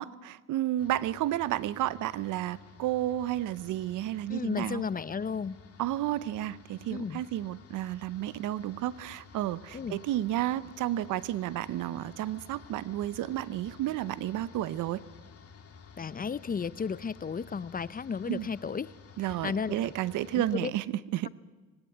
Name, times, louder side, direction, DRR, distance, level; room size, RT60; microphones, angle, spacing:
voice 1, 0.0-4.8 5.8-15.0 18.3-18.5 19.2-20.8 21.1-21.3, right 13 dB, 85° right, 19 dB, 0.8 m, -31 dB
sound 1, 0.8-20.6, left 6 dB, 50° left, 2.8 m, -53 dB
voice 2, 4.3-5.6 6.9-7.2 9.7-10.0 16.0-18.9 19.2-19.9 20.3-20.7, left 6 dB, 30° left, 19 dB, 0.6 m, -34 dB
19.0 x 18.0 x 9.4 m, 1.3 s
cardioid pair, 90°, 30 cm